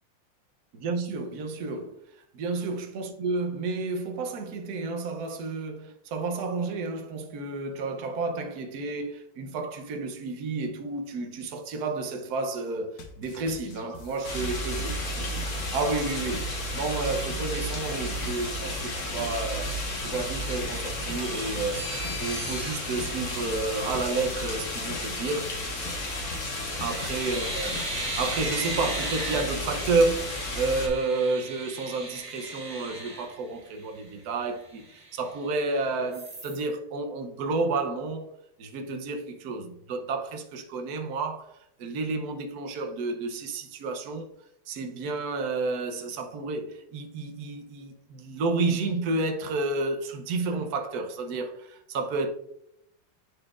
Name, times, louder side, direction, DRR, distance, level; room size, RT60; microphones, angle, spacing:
voice 1, 0.8-14.9 15.2-15.3 15.7-21.9 22.2-25.5 26.8-38.3 38.6-44.3 44.7-52.3, right 3 dB, 60° right, 1.2 m, -31 dB
sound 1, 13.0-28.2, left 3 dB, 60° left, 1.2 m, -44 dB
sound 2, 14.2-30.9, left 1 dB, 45° left, 1.6 m, -33 dB
sound 3, 21.2-24.2 26.0-26.4 26.7-34.0 34.4-34.5 34.8-35.7 36.1-36.6, right 2 dB, 45° right, 2.1 m, -38 dB
11.0 x 4.2 x 2.4 m
omnidirectional pair, 2.0 m